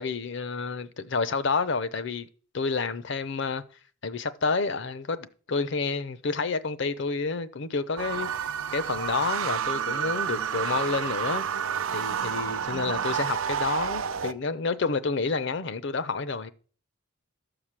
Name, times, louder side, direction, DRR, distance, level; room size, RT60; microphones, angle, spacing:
voice 1, 0.0-2.3 2.5-3.6 4.0-8.3 8.7-11.5 11.9-16.5, left 4 dB, 60° left, 0.7 m, -29 dB
sound 1, 8.0-14.3, right 7 dB, 90° right, 0.6 m, -30 dB
12.5 x 4.9 x 7.4 m
head